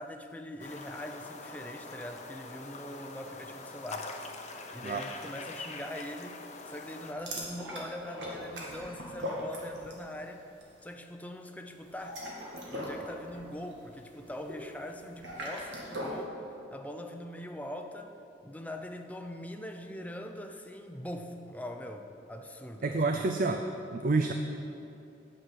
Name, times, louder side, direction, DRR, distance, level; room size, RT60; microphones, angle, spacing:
voice 1, 0.0-4.1 4.7-6.4 6.7-10.5 10.8-12.2 12.7-16.4 16.7-18.2 18.4-23.0, left 1 dB, 10° left, 4 dB, 0.6 m, -42 dB
sound 1, 0.6-7.1, left 3 dB, 40° left, 0.8 m, -44 dB
sound 2, 7.2-10.1 10.4-10.7 11.8-16.2, equal, 85° right, 1.9 m, -40 dB
voice 2, 22.8-23.7 23.9-24.3, right 3 dB, 50° right, 5 dB, 0.5 m, -28 dB
9.1 x 6.3 x 7.6 m, 2.8 s
head